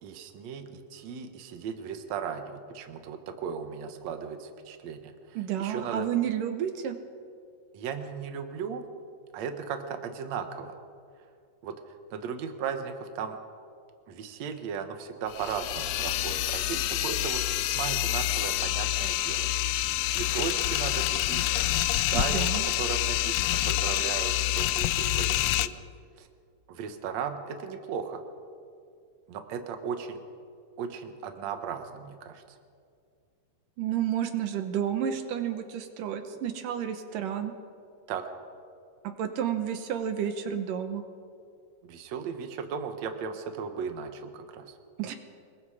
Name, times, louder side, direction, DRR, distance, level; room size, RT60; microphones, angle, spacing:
voice 1, 0.0-6.1 7.7-8.8 9.3-10.8 11.6-11.7 12.1-13.4 14.1-19.5 20.0-25.8 26.2-26.3 26.7-28.2 29.3-30.2 30.8-32.4 38.1-38.2 41.8-44.7, right 6 dB, 60° right, 6 dB, 2.4 m, -36 dB
voice 2, 5.4-7.0 22.1-22.7 33.8-37.5 39.0-41.0 45.0-45.2, right 9 dB, 80° right, 7 dB, 2.7 m, -31 dB
sound 1, 15.3-25.7, left 15 dB, 80° left, 1.5 m, -27 dB
27.0 x 22.0 x 5.0 m, 2.3 s
omnidirectional pair, 3.8 m